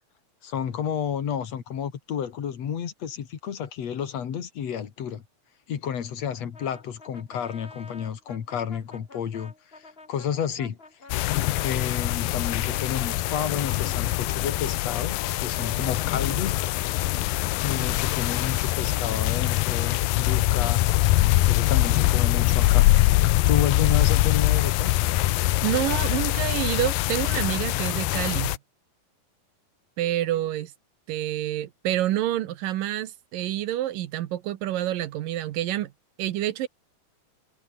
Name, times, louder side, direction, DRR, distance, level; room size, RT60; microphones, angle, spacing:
voice 1, 0.4-5.2 5.7-10.8 11.2-16.7 17.6-20.9 21.5-22.9 23.5-24.9, left 8 dB, 50° left, 3.0 m, -31 dB
Brass instrument, 6.5-12.2 12.7-17.5, left 3 dB, 20° left, 2.2 m, -47 dB
sound 1, 11.1-28.6, left 17 dB, 80° left, 2.5 m, -23 dB
voice 2, 25.6-28.6 30.0-30.7 31.1-35.9 36.2-36.7, right 13 dB, 70° right, 2.6 m, -28 dB
omnidirectional pair, 4.2 m